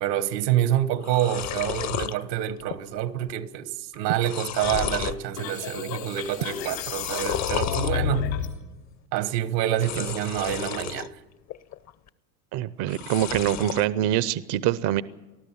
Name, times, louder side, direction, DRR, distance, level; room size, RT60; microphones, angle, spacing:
voice 1, 0.0-8.2 9.1-11.1, right 11 dB, 75° right, 1.5 m, -27 dB
sound 1, 0.6-0.7 0.9-2.1 2.6-3.0 3.3-3.4 3.9-5.2 5.7-6.1 6.9-7.9 9.7-11.1 11.5-12.1 12.8-13.9, left 10 dB, 35° left, 0.8 m, -32 dB
sound 2, 4.6-8.6, left 8 dB, 80° left, 3.7 m, -31 dB
voice 2, 12.5-15.0, right 12 dB, 50° right, 0.8 m, -24 dB
20.0 x 13.0 x 9.8 m
hypercardioid pair, 90°, 50 cm